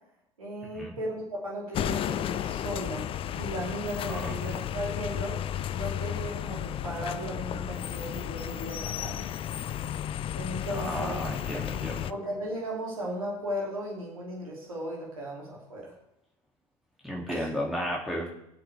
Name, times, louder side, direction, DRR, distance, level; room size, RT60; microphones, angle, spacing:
voice 1, 0.4-5.4 5.7-9.2 10.3-11.3 12.1-15.9 17.3-17.5, equal, 80° right, -3 dB, 2.9 m, -36 dB
sound 1, 1.7-12.1, left 10 dB, 30° left, 0.5 m, -33 dB
voice 2, 4.1-4.6 10.7-12.1 17.0-18.3, equal, ahead, -5 dB, 2.6 m, -33 dB
22.5 x 7.9 x 3.5 m, 0.83 s
figure-of-eight pair, 75°, 18 cm